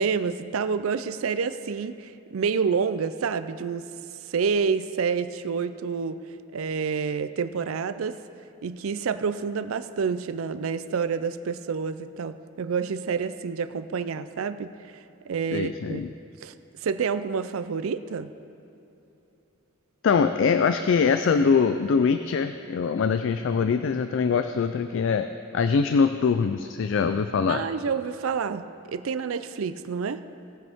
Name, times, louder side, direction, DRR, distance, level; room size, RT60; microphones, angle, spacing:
voice 1, 0.0-3.9 4.3-6.2 6.5-8.2 8.6-14.7 15.3-16.0 16.4-16.5 16.8-18.3 27.5-30.2, right 5 dB, 80° right, 13 dB, 0.4 m, -28 dB
voice 2, 15.5-16.1 20.0-25.3 25.5-27.7, left 5 dB, 60° left, 9 dB, 0.3 m, -23 dB
18.0 x 8.0 x 3.5 m, 2.8 s
head